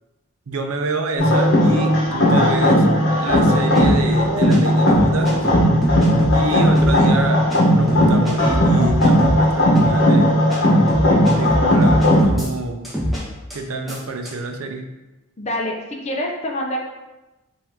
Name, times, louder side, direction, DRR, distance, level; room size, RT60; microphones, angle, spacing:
voice 1, 0.5-5.5 6.3-10.3 11.3-12.9 13.5-14.9, right 3 dB, 75° right, 5 dB, 0.6 m, -27 dB
sound 1, 1.2-12.2, equal, 55° left, 1.1 m, -16 dB
sound 2, 3.3-3.4 3.8-4.0 4.5-4.6 4.9-6.4 6.8-7.0 7.5-7.6 7.9-9.4 9.8-10.0 10.5-10.6 10.9-12.5 12.8-13.2 13.5-13.6 13.9-14.0 14.3-14.4, equal, ahead, 1.0 m, -23 dB
voice 2, 15.4-16.8, left 1 dB, 30° left, 0 dB, 0.6 m, -26 dB
5.7 x 2.6 x 3.5 m, 1.1 s
head